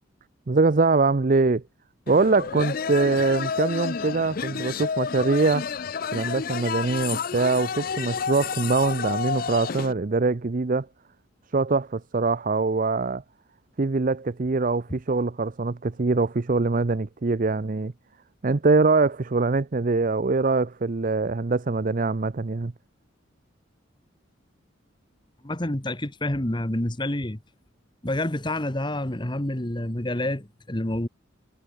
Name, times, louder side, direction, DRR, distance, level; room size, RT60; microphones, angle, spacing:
voice 1, 0.5-1.6 2.1-5.7 6.1-10.9 11.5-13.2 13.8-17.9 18.4-22.7, right 3 dB, 40° right, 0.6 m, -23 dB
sound 1, 2.1-9.9, left 6 dB, 45° left, 0.4 m, -30 dB
voice 2, 25.4-27.4 28.0-31.1, left 1 dB, 25° left, 1.4 m, -28 dB
head